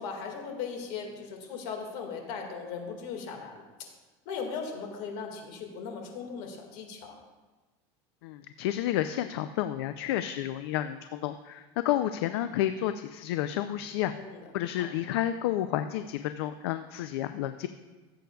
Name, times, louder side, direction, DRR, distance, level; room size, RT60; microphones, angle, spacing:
voice 1, 0.0-3.6 4.3-7.2 14.1-14.5 14.8-14.9, left 5 dB, 65° left, 2 dB, 1.9 m, -38 dB
voice 2, 8.2-14.1 14.5-17.7, left 12 dB, 80° left, 10 dB, 0.4 m, -30 dB
16.0 x 7.7 x 2.3 m, 1.2 s
supercardioid pair, 145°, 13 cm